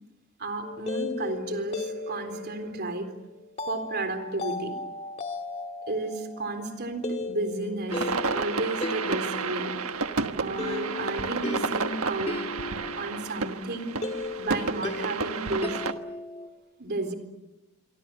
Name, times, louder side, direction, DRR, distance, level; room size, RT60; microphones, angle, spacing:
voice 1, 0.4-3.1 3.7-4.8 5.9-9.8 10.3-12.6 13.0-14.0 14.4-15.8 16.8-17.1, right 2 dB, 50° right, 8 dB, 4.0 m, -32 dB
sound 1, 0.6-16.5, left 2 dB, 30° left, 1.9 m, -36 dB
sound 2, 7.9-15.9, right 4 dB, 85° right, 1.3 m, -31 dB
27.0 x 24.5 x 7.8 m, 1.0 s
head